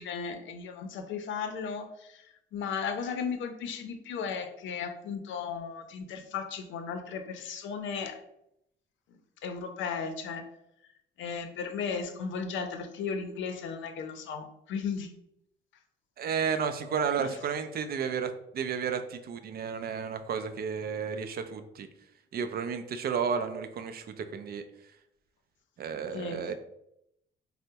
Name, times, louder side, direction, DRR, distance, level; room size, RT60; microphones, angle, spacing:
voice 1, 0.0-8.2 9.4-10.5 11.2-15.1 17.2-17.4 26.1-26.4, left 6 dB, 75° left, 7 dB, 0.5 m, -35 dB
voice 2, 16.2-21.9 22.3-24.6 25.8-26.5, right 6 dB, 50° right, 9 dB, 0.4 m, -32 dB
4.4 x 2.0 x 2.8 m, 0.79 s
cardioid pair, 90°, 20 cm